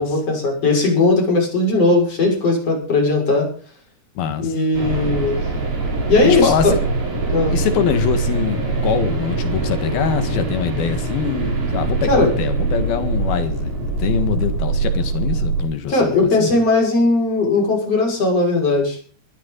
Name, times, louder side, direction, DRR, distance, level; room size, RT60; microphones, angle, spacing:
voice 1, 0.0-3.5 4.4-5.4 6.1-6.7 7.3-7.6 12.1-12.3 15.9-19.0, left 3 dB, 35° left, 6.9 m, -18 dB
voice 2, 4.2-4.6 6.2-6.8 7.5-16.5, left 7 dB, 70° left, 3.4 m, -23 dB
sound 1, 4.7-15.6, right 3 dB, 55° right, 6.3 m, -23 dB
20.5 x 14.0 x 4.0 m
omnidirectional pair, 4.6 m